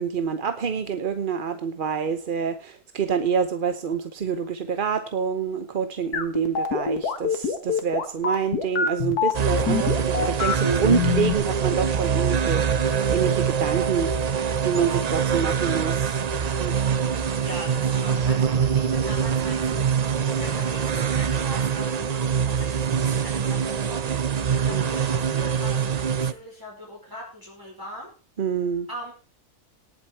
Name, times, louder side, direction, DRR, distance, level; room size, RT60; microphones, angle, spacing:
voice 1, 0.0-16.2 16.6-16.7 24.7-24.8 28.4-28.9, right 6 dB, 40° right, 9 dB, 0.8 m, -27 dB
sound 1, 6.1-11.3, left 5 dB, 80° left, 2.1 m, -24 dB
sound 2, 9.3-26.3, right 7 dB, 75° right, 0.3 m, -24 dB
voice 2, 17.4-19.9 20.2-28.1 28.9-29.1, equal, 15° right, -3 dB, 4.8 m, -41 dB
18.5 x 8.0 x 4.5 m, 0.34 s
omnidirectional pair, 1.6 m